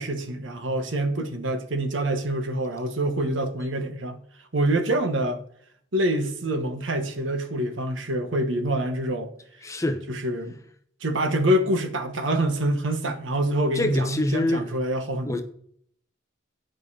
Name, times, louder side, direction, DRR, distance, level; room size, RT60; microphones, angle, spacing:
voice 1, 0.0-4.2 4.5-5.4 5.9-9.3 10.1-10.6 11.0-15.4, right 1 dB, 85° right, 1.2 m, -26 dB
voice 2, 9.6-10.1 13.7-14.8 15.3-15.4, left 1 dB, 15° left, 0.7 m, -25 dB
9.8 x 5.3 x 4.8 m
head